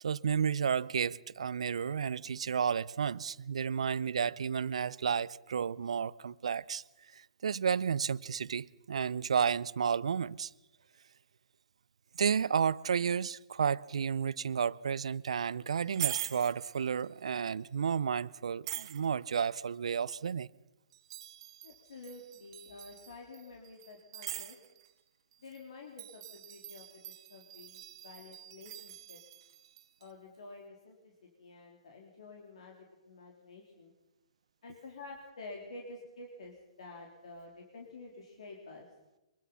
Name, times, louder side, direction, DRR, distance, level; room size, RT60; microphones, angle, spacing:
voice 1, 0.0-6.8 7.1-10.5 12.1-20.5, right 7 dB, 75° right, 0.6 m, -32 dB
sound 1, 15.7-17.2 18.6-19.4 20.9-25.0 25.3-25.6 26.0-30.1, right 12 dB, 50° right, 1.8 m, -43 dB
voice 2, 21.6-24.6 25.4-29.2 30.0-31.1 31.4-33.9 34.6-38.9, left 3 dB, 70° left, 3.9 m, -50 dB
24.0 x 21.5 x 5.8 m
hypercardioid pair, 130°, 3 cm